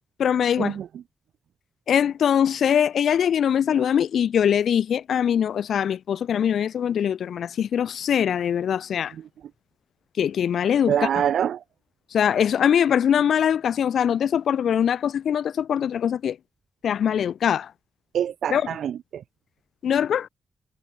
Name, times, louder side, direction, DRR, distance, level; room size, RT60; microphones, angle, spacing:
voice 1, 0.2-0.8 1.9-9.1 10.2-11.1 12.1-16.4 16.8-17.7 18.5-18.8 19.8-20.3, left 8 dB, 65° left, 1.6 m, -22 dB
voice 2, 10.9-11.6 18.1-19.2, right 9 dB, 75° right, 1.0 m, -25 dB
wide cardioid pair, 165°, 0 cm